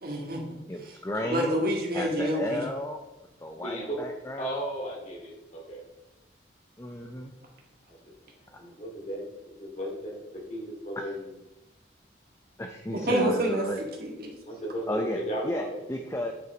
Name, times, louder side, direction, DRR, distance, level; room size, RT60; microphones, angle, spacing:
voice 1, 0.0-0.4 1.3-2.6 12.9-13.6 14.0-14.3, right 1 dB, 50° right, 0 dB, 2.0 m, -27 dB
voice 2, 0.7-1.6 1.9-3.0 3.4-4.6 6.8-7.3 12.6-13.8 14.9-15.2 15.4-15.6 15.9-16.3, left 1 dB, 15° left, 4 dB, 0.6 m, -33 dB
voice 3, 3.5-4.1 4.4-5.8 7.9-8.1 8.4-11.3 14.5-15.8, right 1 dB, 35° left, -2 dB, 2.6 m, -36 dB
9.6 x 5.6 x 5.1 m, 0.97 s
head